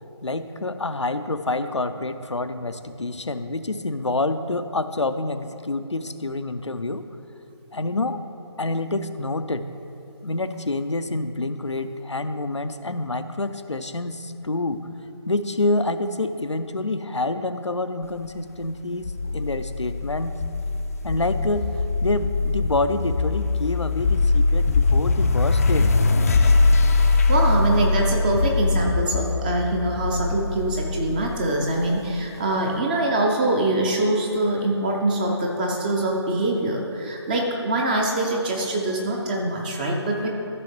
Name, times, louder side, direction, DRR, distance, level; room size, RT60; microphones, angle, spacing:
voice 1, 0.2-7.0 7.7-8.2 8.6-9.7 10.2-14.8 15.3-20.3 21.0-21.7 22.0-25.9, left 2 dB, 85° left, 10 dB, 0.6 m, -27 dB
sound 1, 19.0-32.2, left 3 dB, 35° left, 0.5 m, -22 dB
voice 2, 27.0-40.3, right 1 dB, 20° right, 0 dB, 0.6 m, -24 dB
14.0 x 6.2 x 3.2 m, 2.9 s
figure-of-eight pair, 150°, 15 cm